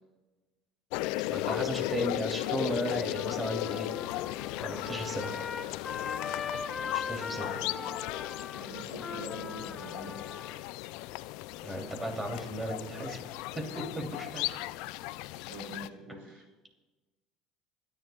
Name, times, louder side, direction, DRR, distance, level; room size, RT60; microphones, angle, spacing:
sound 1, 0.9-15.9, left 18 dB, 70° left, 0.3 m, -36 dB
voice 1, 1.3-3.9 4.6-5.4 6.9-7.5 11.6-13.2 13.5-14.4, right 1 dB, 15° right, 2 dB, 2.9 m, -35 dB
Trumpet, 2.9-10.6, left 5 dB, 35° left, 0.7 m, -40 dB
voice 2, 7.4-7.7 8.5-10.2 15.5-16.4, right 2 dB, 80° right, -1 dB, 4.6 m, -45 dB
27.5 x 10.5 x 2.3 m, 1.2 s
hypercardioid pair, 80°, 0 cm